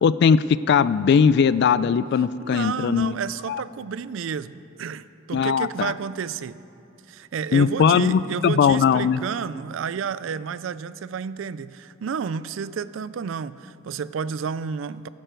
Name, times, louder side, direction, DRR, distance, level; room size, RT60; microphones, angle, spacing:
voice 1, 0.0-3.2 3.5-3.6 5.3-5.9 7.5-9.2, left 6 dB, 55° left, 17 dB, 0.3 m, -19 dB
voice 2, 2.4-6.6 7.1-15.1, right 6 dB, 70° right, 17 dB, 0.4 m, -31 dB
15.0 x 11.5 x 4.5 m, 2.6 s
head